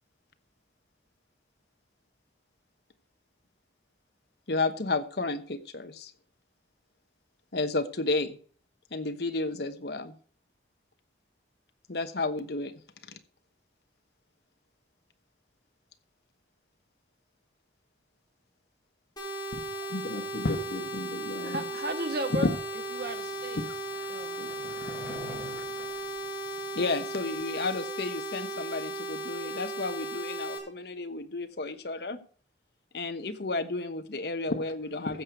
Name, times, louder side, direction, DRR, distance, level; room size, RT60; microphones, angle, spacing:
voice 1, 4.5-6.1 7.5-8.4 8.9-10.1 11.9-12.7 13.1-13.2 26.7-32.2 32.9-35.2, left 3 dB, 65° left, 9 dB, 1.1 m, -32 dB
sound 1, 19.2-30.6, right 1 dB, 25° left, 3.1 m, -36 dB
voice 2, 19.9-21.6 22.4-22.5 24.4-24.5 35.1-35.2, left 1 dB, 80° left, -2 dB, 1.5 m, -32 dB
voice 3, 21.4-22.5 22.9-23.6 24.1-24.4, right 1 dB, 60° right, 7 dB, 1.6 m, -34 dB
Skateboard, 22.0-27.3, left 1 dB, ahead, 5.5 m, -48 dB
15.5 x 6.9 x 4.7 m, 0.43 s
head